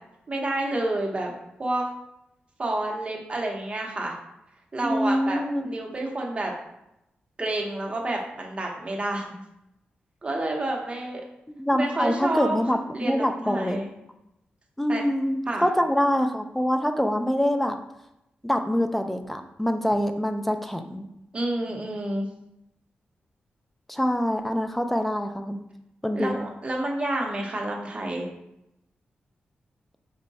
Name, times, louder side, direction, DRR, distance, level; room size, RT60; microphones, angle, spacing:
voice 1, 0.3-1.3 1.6-1.9 2.6-4.1 4.7-6.5 7.4-9.4 10.2-11.2 11.7-12.6 12.9-13.9 14.9-15.1 15.5-15.6 21.3-22.2 26.1-28.3, right 2 dB, 30° right, 0 dB, 0.8 m, -29 dB
voice 2, 4.8-5.7 11.5-13.8 14.8-17.8 18.4-21.1 23.9-25.6 26.0-26.5, equal, 5° left, 6 dB, 0.3 m, -25 dB
4.5 x 2.1 x 4.0 m, 0.85 s
wide cardioid pair, 110°, 4 cm